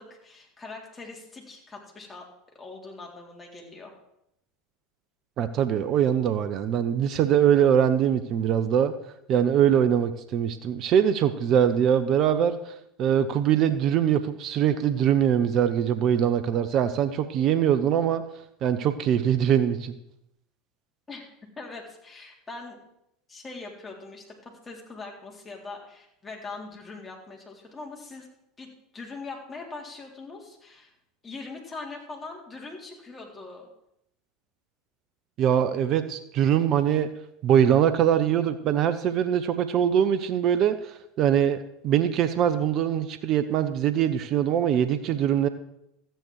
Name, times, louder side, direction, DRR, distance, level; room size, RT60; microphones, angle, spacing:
voice 1, 0.0-2.2 2.5-3.9 21.1-21.3 21.6-22.8 23.3-28.3 28.6-30.9 31.2-33.7, left 3 dB, 20° left, -1 dB, 3.8 m, -42 dB
voice 2, 5.4-8.9 9.3-18.2 18.6-20.0 35.4-37.1 37.4-45.5, right 9 dB, 45° right, 11 dB, 0.8 m, -23 dB
13.5 x 9.3 x 4.8 m, 0.79 s
hypercardioid pair, 75°, 0 cm